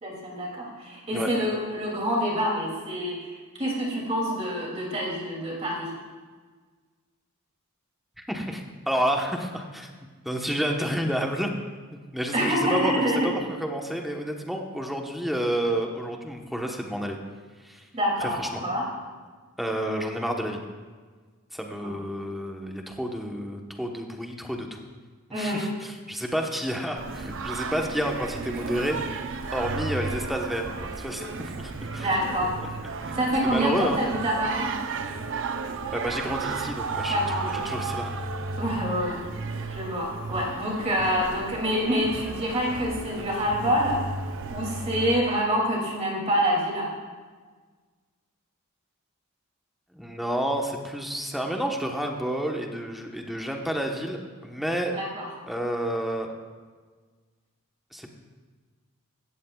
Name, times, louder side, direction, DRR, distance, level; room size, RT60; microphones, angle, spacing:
voice 1, 0.0-5.9 12.3-13.3 17.9-18.3 18.6-18.9 21.8-21.9 25.3-25.7 32.0-32.6 33.1-34.7 37.1-37.6 38.6-39.2 39.7-44.0 44.5-46.9 54.9-55.3, equal, 30° right, -3 dB, 2.7 m, -26 dB
voice 2, 8.2-9.9 10.2-11.5 11.9-17.2 17.6-17.9 18.2-18.6 19.6-20.6 21.5-24.8 25.3-32.7 33.0-34.0 35.9-37.4 37.6-38.2 49.9-54.9 55.5-56.3 57.9-58.1, equal, ahead, 1 dB, 1.1 m, -30 dB
Singing, 27.0-45.2, right 4 dB, 60° right, 0.7 m, -34 dB
17.0 x 13.5 x 2.4 m, 1.5 s
head